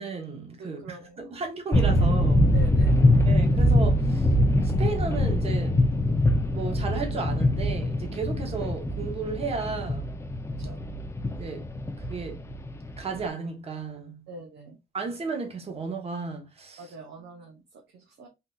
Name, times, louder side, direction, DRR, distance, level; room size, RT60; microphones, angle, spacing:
voice 1, 0.0-2.5 3.2-4.3 4.6-5.8 6.5-10.1 11.4-11.7 12.1-12.4 13.0-14.2 14.9-16.9, right 4 dB, 35° right, 1.1 m, -34 dB
voice 2, 0.6-1.3 2.5-3.0 10.6-10.8 14.3-14.8 16.8-18.3, right 2 dB, 65° right, 0.8 m, -45 dB
sound 1, 1.7-13.2, left 1 dB, 15° left, 0.5 m, -23 dB
3.7 x 2.7 x 2.3 m
cardioid pair, 115°, 18 cm